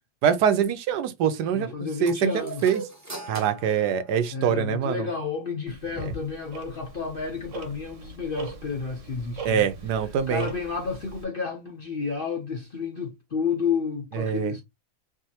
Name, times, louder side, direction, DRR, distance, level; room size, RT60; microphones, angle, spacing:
voice 1, 0.2-2.8 3.3-5.1 6.0-6.1 9.4-10.5 14.1-14.5, right 8 dB, 80° right, 1.2 m, -24 dB
voice 2, 1.5-2.8 4.3-9.7 10.3-14.6, left 5 dB, 55° left, 0.6 m, -31 dB
sound 1, 2.1-4.7, right 2 dB, 15° right, 0.7 m, -41 dB
Tick-tock, 5.7-11.2, right 5 dB, 55° right, 1.1 m, -41 dB
4.7 x 2.7 x 2.8 m
omnidirectional pair, 1.7 m